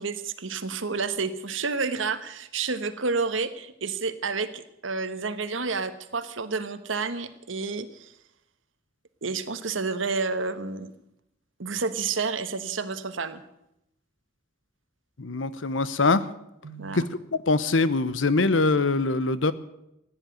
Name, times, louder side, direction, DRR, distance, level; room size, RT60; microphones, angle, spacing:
voice 1, 0.0-8.1 9.2-10.9 11.6-13.4 16.6-17.1, right 4 dB, 85° right, 11 dB, 1.2 m, -30 dB
voice 2, 15.2-16.3 17.5-19.5, left 3 dB, 80° left, 15 dB, 0.9 m, -23 dB
15.5 x 10.0 x 9.2 m, 0.82 s
head